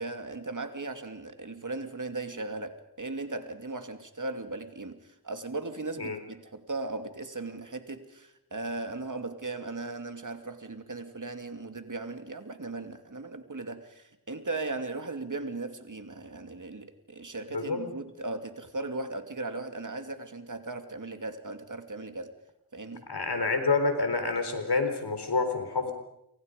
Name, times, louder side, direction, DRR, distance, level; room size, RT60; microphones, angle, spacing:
voice 1, 0.0-22.3 22.7-23.1, right 3 dB, 50° right, 7 dB, 2.7 m, -37 dB
voice 2, 23.1-25.9, left 3 dB, 75° left, 7 dB, 4.3 m, -28 dB
29.0 x 25.0 x 5.3 m, 0.81 s
wide cardioid pair, 50°, 39 cm